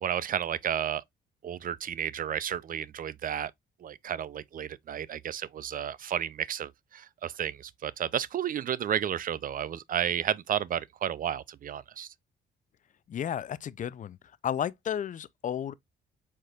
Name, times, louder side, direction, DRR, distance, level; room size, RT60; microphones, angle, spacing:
voice 1, 0.0-1.0 1.4-3.5 3.8-12.1, right 9 dB, 45° right, 0.4 m, -32 dB
voice 2, 13.1-14.2 14.4-15.7, left 9 dB, 40° left, 0.4 m, -32 dB
4.7 x 4.4 x 2.4 m
cardioid pair, 90°, 20 cm